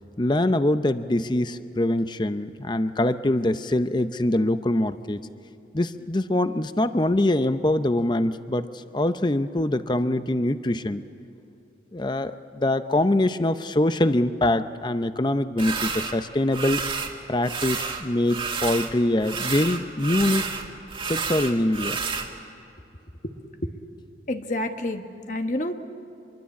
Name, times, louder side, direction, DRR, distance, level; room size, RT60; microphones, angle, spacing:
voice 1, 0.2-5.2 5.7-11.0 11.9-16.8 17.3-20.5 21.0-22.0, left 1 dB, 25° left, 11 dB, 0.6 m, -24 dB
sound 1, 15.6-16.1 16.5-17.1 17.4-18.9 19.2-22.3, right 5 dB, 30° right, 1.9 m, -30 dB
voice 2, 24.3-25.7, left 1 dB, 45° left, 6 dB, 1.3 m, -28 dB
26.5 x 23.0 x 8.5 m, 2.8 s
head